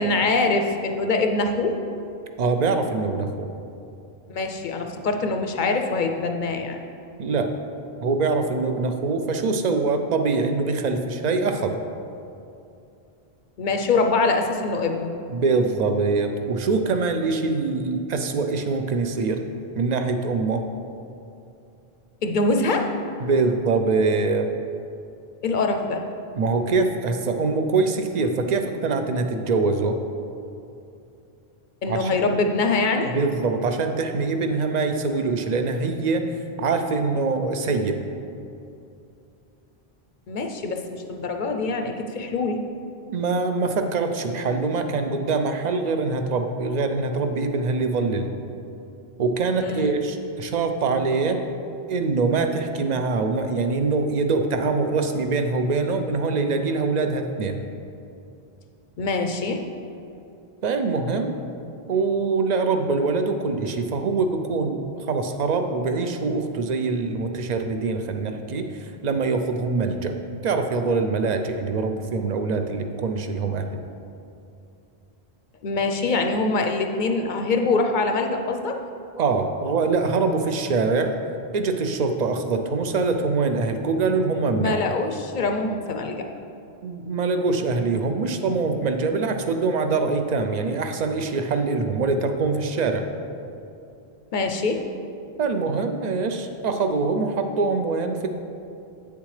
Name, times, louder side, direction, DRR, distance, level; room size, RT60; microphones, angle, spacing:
voice 1, 0.0-1.8 4.3-6.8 13.6-15.1 22.2-22.9 25.4-26.1 31.8-33.1 40.3-42.6 49.6-49.9 59.0-59.6 75.6-78.8 84.5-86.3 94.3-94.8, left 3 dB, 55° left, 4 dB, 0.6 m, -24 dB
voice 2, 2.4-3.5 7.2-7.5 8.0-11.8 15.3-19.4 19.8-20.6 23.2-24.5 26.4-30.0 31.9-32.1 33.0-36.3 36.6-38.0 43.1-48.3 49.2-51.4 51.9-57.6 60.6-61.4 61.9-70.2 70.4-73.6 79.2-81.1 81.5-84.8 86.8-93.0 95.4-98.3, right 4 dB, 50° right, 6 dB, 0.6 m, -24 dB
8.6 x 6.9 x 3.2 m, 2.6 s
omnidirectional pair, 1.0 m